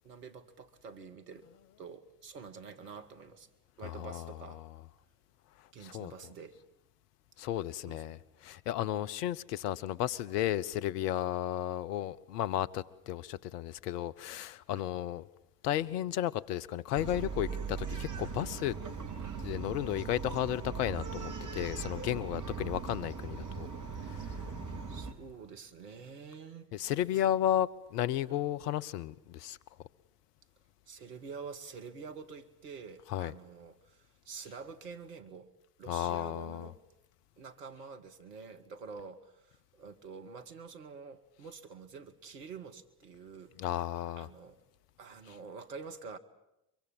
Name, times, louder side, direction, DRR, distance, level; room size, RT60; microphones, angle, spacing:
voice 1, 0.0-1.5 1.8-3.5 3.8-4.7 5.7-6.6 7.9-8.2 8.8-9.0 14.7-14.9 22.6-22.8 24.9-26.7 27.1-27.2 28.3-28.4 30.9-35.5 35.8-36.8 37.4-43.5 44.2-44.6 45.0-46.2, right 5 dB, 85° right, 1.7 m, -47 dB
voice 2, 3.8-4.7 5.8-6.1 7.4-15.3 15.6-18.8 19.4-23.7 24.1-24.3 26.7-29.6 33.1-33.3 35.9-36.7 43.6-44.3, left 12 dB, 75° left, 0.9 m, -33 dB
Bark, 16.9-25.1, right 5 dB, 40° right, 4.0 m, -39 dB
24.5 x 23.5 x 8.8 m
figure-of-eight pair, 55°, 47 cm